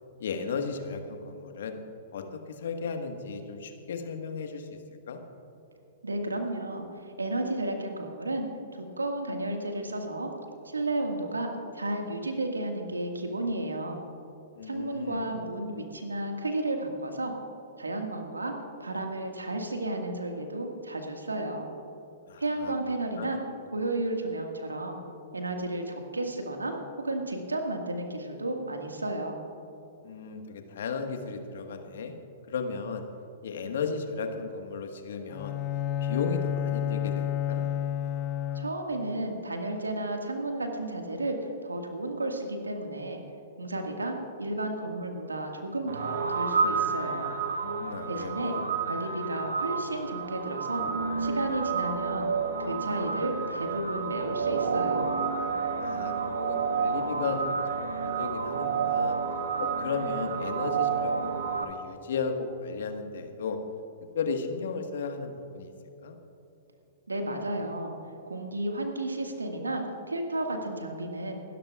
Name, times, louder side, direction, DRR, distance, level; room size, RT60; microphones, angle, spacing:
voice 1, 0.2-1.8 2.1-4.8 5.1-5.2 14.5-15.2 22.3-22.7 23.2-23.3 30.0-32.1 32.5-33.0 33.4-35.6 36.0-37.7 47.6-48.6 55.8-59.2 59.6-63.6 64.1-65.7 66.0-66.2 67.3-67.4, left 5 dB, 65° left, 5 dB, 1.5 m, -35 dB
voice 2, 6.0-8.5 8.8-10.3 10.7-14.0 14.6-17.3 17.8-18.6 18.8-21.7 22.4-23.4 23.7-25.0 25.3-29.4 38.5-43.2 43.6-47.3 48.1-48.5 48.8-50.9 51.2-52.3 52.6-55.1 67.1-67.9 68.3-71.4, right 1 dB, 85° right, 3 dB, 1.8 m, -32 dB
Bowed string instrument, 35.3-39.0, left 10 dB, 35° left, 0.5 m, -30 dB
sound 1, 45.9-61.6, right 5 dB, 65° right, 1.1 m, -30 dB
27.0 x 13.0 x 2.4 m, 2.8 s
figure-of-eight pair, 110°, 0 cm